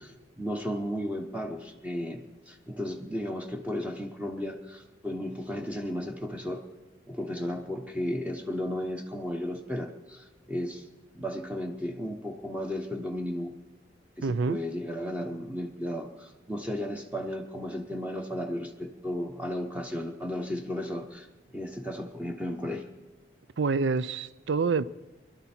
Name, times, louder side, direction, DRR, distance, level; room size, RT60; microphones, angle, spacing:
voice 1, 0.0-6.6 7.1-10.8 11.1-13.5 14.2-22.9, left 1 dB, 5° right, 1.0 m, -34 dB
voice 2, 14.2-14.6 23.6-24.8, right 4 dB, 80° right, 0.5 m, -27 dB
24.0 x 12.0 x 4.4 m
head